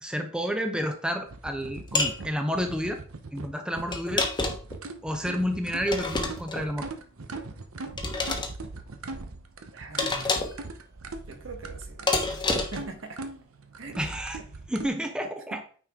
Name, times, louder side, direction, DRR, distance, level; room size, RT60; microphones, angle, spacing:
voice 1, 0.0-3.0 3.3-4.3 5.0-6.9 14.0-14.4 14.7-15.6, equal, 5° right, 5 dB, 0.7 m, -30 dB
sound 1, 1.3-14.9, right 3 dB, 80° right, 0.8 m, -40 dB
sound 2, 1.9-2.2 3.9-4.8 5.9-6.6 8.0-8.5 10.0-10.6 12.1-12.9, left 3 dB, 20° left, 1.1 m, -28 dB
voice 2, 9.7-10.3 11.2-13.2 13.8-14.0 15.5-15.6, right 3 dB, 65° right, 5 dB, 1.5 m, -42 dB
9.0 x 4.8 x 3.7 m, 0.43 s
head